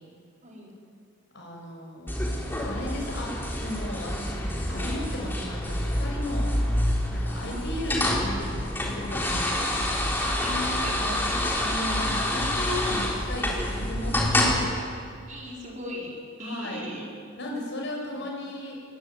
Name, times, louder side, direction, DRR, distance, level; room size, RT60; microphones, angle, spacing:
voice 1, 0.4-0.7 6.6-6.8 7.4-7.7 10.2-11.5 15.3-17.1, equal, 40° right, -3 dB, 5.2 m, -38 dB
voice 2, 1.3-6.6 7.1-8.5 8.8-9.7 11.6-14.7 16.4-16.9 17.4-18.8, left 1 dB, 60° left, -1 dB, 7.5 m, -35 dB
sound 1, 2.1-14.6, left 1 dB, 10° left, 4.0 m, -27 dB
22.5 x 20.0 x 9.3 m, 2.3 s
head